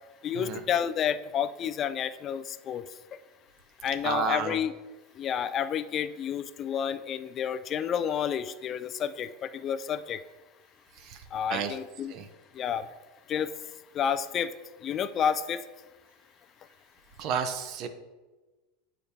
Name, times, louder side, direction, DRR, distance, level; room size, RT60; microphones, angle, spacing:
voice 1, 0.2-2.8 3.8-4.7 5.2-10.2 11.3-12.1 12.6-12.8 13.3-13.5 13.9-14.5 14.8-15.6, left 8 dB, 40° left, 12 dB, 0.3 m, -30 dB
voice 2, 4.0-4.6 11.1-11.2 11.5-11.7 12.1-12.2 17.2-17.9, right 7 dB, 50° right, 9 dB, 0.7 m, -30 dB
8.0 x 5.1 x 2.8 m, 1.2 s
supercardioid pair, 110°, 0 cm